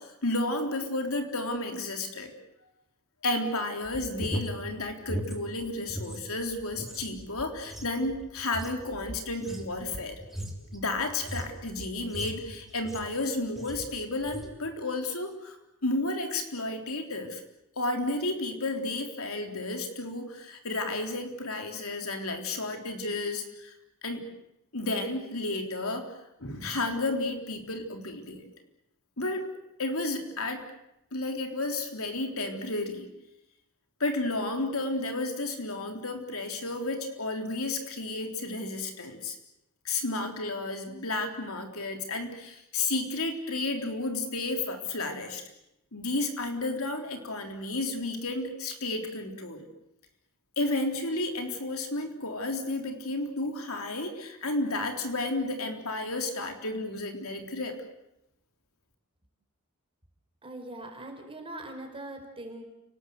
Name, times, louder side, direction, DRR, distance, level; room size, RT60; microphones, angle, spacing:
voice 1, 0.0-2.3 3.2-10.2 10.7-15.6 15.8-17.4 17.8-23.7 24.0-24.3 24.7-26.1 26.4-28.5 29.2-29.5 29.8-30.6 31.1-33.1 34.0-39.4 39.8-45.4 45.9-49.6 50.6-57.8, left 2 dB, 70° left, 4 dB, 3.7 m, -32 dB
sound 1, 3.8-6.2 6.5-13.2 13.6-13.9 14.2-14.6, equal, ahead, 3.4 m, -39 dB
voice 2, 60.4-62.6, right 1 dB, 25° right, 4 dB, 4.9 m, -41 dB
29.5 x 19.0 x 8.0 m, 0.84 s
head